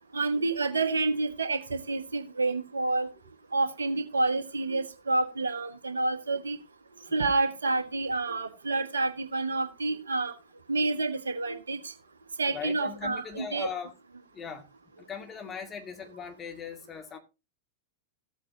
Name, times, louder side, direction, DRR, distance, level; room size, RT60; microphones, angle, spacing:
voice 1, 0.1-3.1 3.5-6.6 7.1-10.3 10.7-11.9 12.4-13.7, right 3 dB, 75° right, 1.3 m, -29 dB
voice 2, 12.5-13.9 14.3-14.7 15.0-17.2, left 7 dB, 20° left, 2.2 m, -39 dB
15.0 x 8.3 x 2.8 m
figure-of-eight pair, 90°, 0 cm